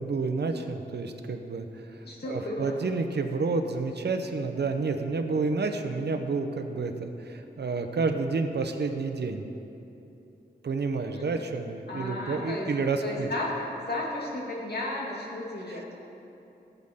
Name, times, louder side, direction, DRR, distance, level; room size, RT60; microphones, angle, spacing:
voice 1, 0.0-9.4 10.6-13.3 15.7-15.9, right 4 dB, 75° right, 6 dB, 0.8 m, -30 dB
voice 2, 2.0-2.7 11.1-11.3 11.9-12.7 13.0-15.9, left 1 dB, 70° left, -4 dB, 2.4 m, -34 dB
18.0 x 8.2 x 3.7 m, 2.9 s
wide cardioid pair, 110°, 17 cm